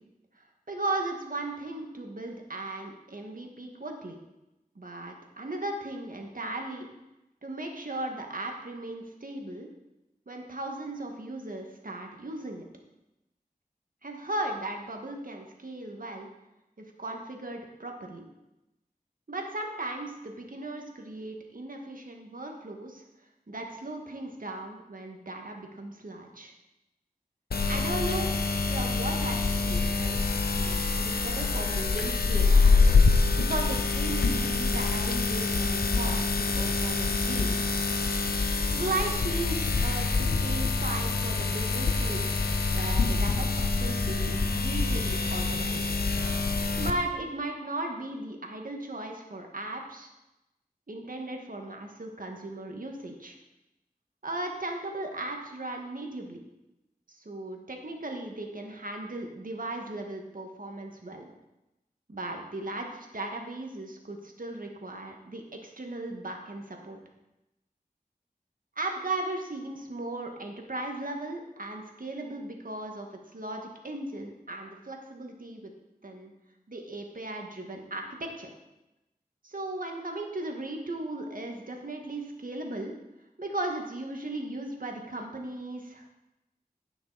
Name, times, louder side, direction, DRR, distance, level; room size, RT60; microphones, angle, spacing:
voice 1, 0.3-4.2 4.7-6.9 7.4-9.7 10.3-12.7 14.0-16.3 16.8-18.3 19.3-23.0 23.5-26.5 27.7-28.3 28.7-30.2 30.5-37.7 38.7-46.0 46.8-50.1 50.9-53.4 54.2-56.4 57.1-61.3 62.1-67.0 68.7-75.7 76.0-76.3 76.7-78.5 79.4-82.9 83.4-86.1, right 2 dB, 65° right, 2 dB, 1.7 m, -37 dB
sound 1, 27.5-46.9, left 3 dB, 90° left, 0.7 m, -26 dB
16.5 x 6.0 x 4.1 m, 0.95 s
wide cardioid pair, 45°, 15 cm